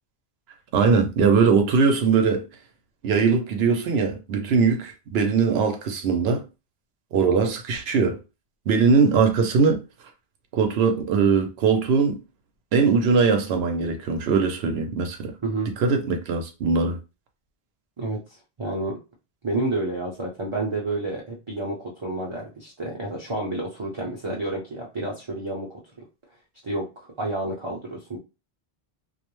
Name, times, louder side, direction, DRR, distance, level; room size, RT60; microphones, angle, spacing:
voice 1, 0.7-2.4 3.0-6.4 7.1-8.2 8.7-9.8 10.5-12.2 12.7-15.3 15.8-17.0, right 5 dB, 80° right, 0.9 m, -21 dB
voice 2, 15.4-15.7 18.0-19.0 19.4-25.8 26.6-28.2, right 2 dB, 35° right, 0.6 m, -30 dB
2.4 x 2.1 x 3.0 m
omnidirectional pair, 1.0 m